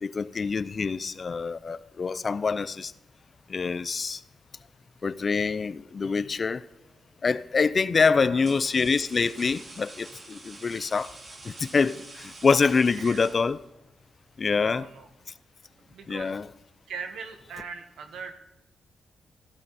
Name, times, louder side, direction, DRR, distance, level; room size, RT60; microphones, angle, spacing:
voice 1, 0.0-2.9 3.5-4.2 5.0-6.6 7.2-11.1 11.4-13.6 14.4-14.8 16.1-16.5, left 5 dB, 40° left, 0.5 m, -25 dB
sound 1, 6.8-7.1 7.9-13.9, right 2 dB, 40° right, 2.3 m, -47 dB
voice 2, 8.0-8.5 13.0-13.4 14.5-15.1 15.9-16.4 16.9-18.3, right 5 dB, 85° right, 1.7 m, -40 dB
15.5 x 12.0 x 4.2 m
cardioid pair, 100°, 0 cm